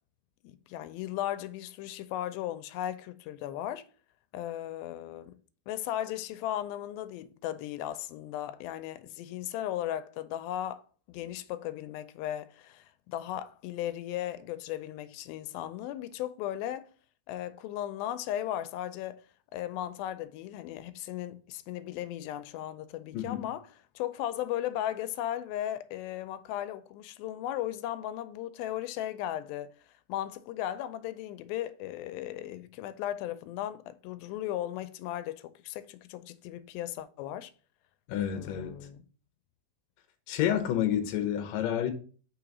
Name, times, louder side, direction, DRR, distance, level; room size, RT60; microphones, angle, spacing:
voice 1, 0.4-3.8 4.3-5.4 5.7-16.9 17.3-19.2 19.5-23.7 24.0-29.7 30.1-37.5 38.3-39.0, left 12 dB, 90° left, 2.4 m, -36 dB
voice 2, 23.1-23.5 38.1-38.7 40.3-41.9, left 10 dB, 70° left, 1.7 m, -29 dB
5.3 x 3.9 x 5.9 m
omnidirectional pair, 4.1 m